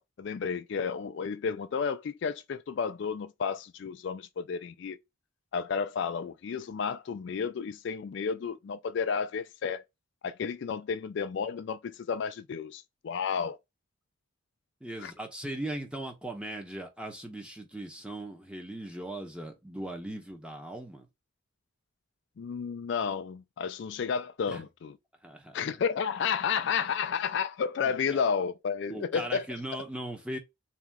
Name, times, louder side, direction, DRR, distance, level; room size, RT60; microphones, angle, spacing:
voice 1, 0.0-5.0 5.5-9.8 10.2-13.6 15.0-15.1 22.4-25.0 25.5-29.4, left 6 dB, 55° left, 0.3 m, -32 dB
voice 2, 14.8-21.1 24.5-24.6 25.2-25.6 26.6-26.7 27.8-28.2 28.9-30.4, right 1 dB, 5° right, 0.8 m, -39 dB
3.6 x 2.8 x 3.6 m
head